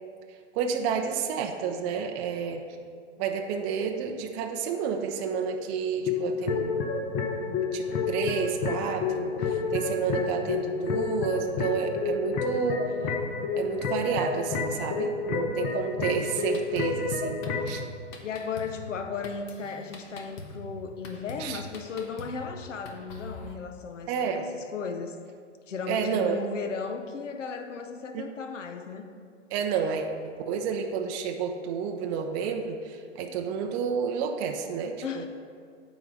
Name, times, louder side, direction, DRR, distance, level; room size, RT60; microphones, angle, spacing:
voice 1, 0.5-2.6 3.2-6.7 7.7-12.9 13.6-17.8 21.4-21.6 24.1-24.5 25.9-26.4 28.1-28.3 29.5-30.1 30.5-35.2, right 6 dB, 20° right, 3 dB, 0.4 m, -30 dB
sound 1, 6.0-17.8, left 4 dB, 25° left, 0.6 m, -30 dB
voice 2, 15.3-15.7 18.2-24.4 24.7-25.2 25.7-29.1 35.0-35.3, left 5 dB, 85° left, 7 dB, 0.8 m, -36 dB
Drum kit, 16.3-23.5, left 2 dB, 40° left, 1.0 m, -44 dB
8.9 x 4.0 x 6.0 m, 2.2 s
hypercardioid pair, 125°, 36 cm